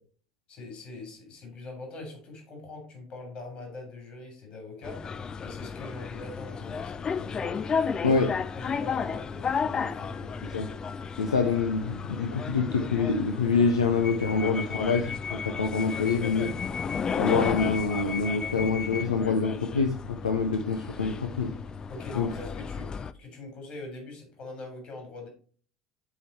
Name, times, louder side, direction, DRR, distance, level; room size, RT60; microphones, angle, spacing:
voice 1, 0.5-5.0 5.4-7.6 8.0-8.3 8.5-10.3 21.9-25.3, left 2 dB, 45° left, 3 dB, 3.5 m, -42 dB
sound 1, 4.8-23.1, left 6 dB, 30° left, 0.3 m, -33 dB
voice 2, 11.2-16.5 17.2-21.5 22.2-22.3, left 5 dB, 80° left, 4 dB, 0.6 m, -26 dB
7.6 x 3.8 x 4.3 m, 0.42 s
figure-of-eight pair, 65°, 3 cm